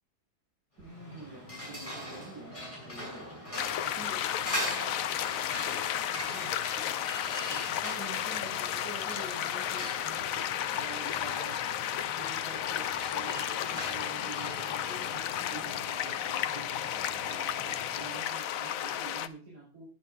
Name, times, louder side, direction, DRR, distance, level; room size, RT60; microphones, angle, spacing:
sound 1, 0.8-18.2, equal, 20° left, 6.3 m, -42 dB
voice 1, 0.8-3.3 3.8-4.2 4.5-5.2 6.3-6.6 7.7-11.6 12.2-16.7 17.2-19.9, right 3 dB, 85° right, -6 dB, 5.8 m, -47 dB
sound 2, 3.6-19.3, left 10 dB, 65° left, 1.0 m, -33 dB
20.0 x 8.7 x 2.5 m, 0.40 s
omnidirectional pair, 1.7 m